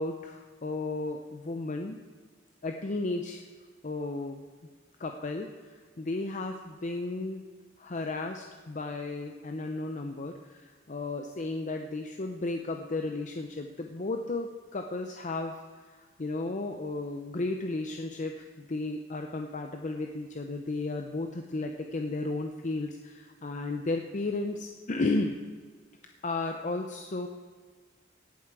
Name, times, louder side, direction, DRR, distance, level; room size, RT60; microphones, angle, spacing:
voice 1, 0.0-2.0 2.6-3.5 3.8-4.4 5.0-7.4 7.8-25.4 26.2-27.3, left 2 dB, 40° left, 4 dB, 0.6 m, -34 dB
17.0 x 7.5 x 4.7 m, 1.5 s
head